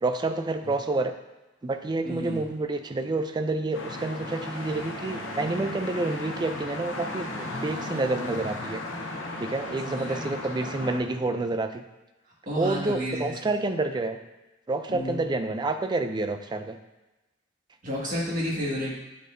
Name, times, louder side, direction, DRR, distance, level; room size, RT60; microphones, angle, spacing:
voice 1, 0.0-1.1 1.6-8.8 9.4-11.8 12.6-14.2 14.7-16.8, right 2 dB, 20° right, 8 dB, 0.4 m, -28 dB
voice 2, 2.0-2.5 9.8-10.3 12.5-13.4 14.9-15.2 17.8-19.0, equal, 45° right, -5 dB, 1.7 m, -31 dB
sound 1, 3.7-11.0, left 2 dB, 75° left, 0.9 m, -35 dB
9.3 x 4.0 x 2.6 m, 1.0 s
head